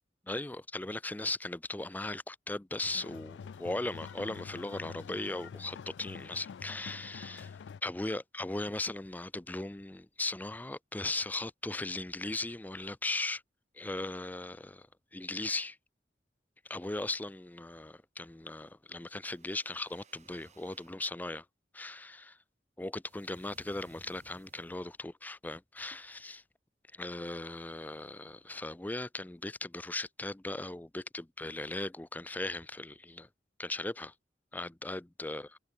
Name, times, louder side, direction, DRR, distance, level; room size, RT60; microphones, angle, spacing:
voice 1, 0.3-13.4 13.7-14.9 15.1-15.8 16.6-21.5 21.7-22.4 22.8-26.4 26.9-33.3 33.6-34.1 34.5-35.5, left 2 dB, 10° left, 0.4 m, -38 dB
sound 1, 2.8-7.8, left 6 dB, 80° left, 0.4 m, -46 dB
sound 2, 19.2-21.0 23.1-24.9, right 3 dB, 40° right, 2.7 m, -61 dB
head